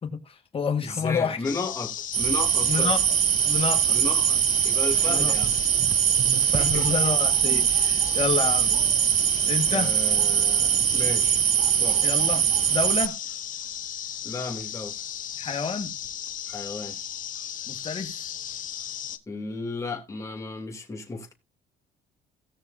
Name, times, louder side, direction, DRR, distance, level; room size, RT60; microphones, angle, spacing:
voice 1, 0.0-1.4 2.7-3.0 3.4-4.0 5.1-5.3 6.3-8.7 9.5-10.0 12.0-13.2 15.4-15.9 17.7-18.3, left 6 dB, 35° left, 1.9 m, -29 dB
voice 2, 0.8-2.9 3.9-5.6 6.6-6.9 9.7-12.0 14.2-15.0 16.5-17.0 19.3-21.3, left 3 dB, 20° left, 2.9 m, -34 dB
sound 1, 1.4-19.2, left 10 dB, 50° left, 1.0 m, -36 dB
sound 2, 2.1-13.1, right 10 dB, 40° right, 0.4 m, -22 dB
17.5 x 6.5 x 2.7 m
cardioid pair, 110°, 17 cm